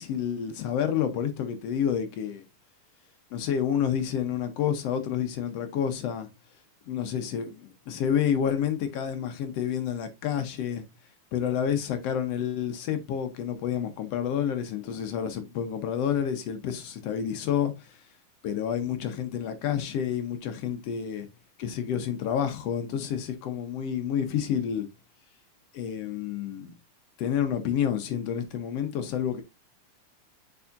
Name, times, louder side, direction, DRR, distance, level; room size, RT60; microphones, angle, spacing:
voice 1, 0.0-2.4 3.3-6.3 6.9-10.8 11.3-18.0 18.4-21.3 21.6-24.9 25.7-26.7 27.2-29.4, left 8 dB, 70° left, 1.6 m, -29 dB
7.0 x 5.5 x 2.5 m
omnidirectional pair, 3.6 m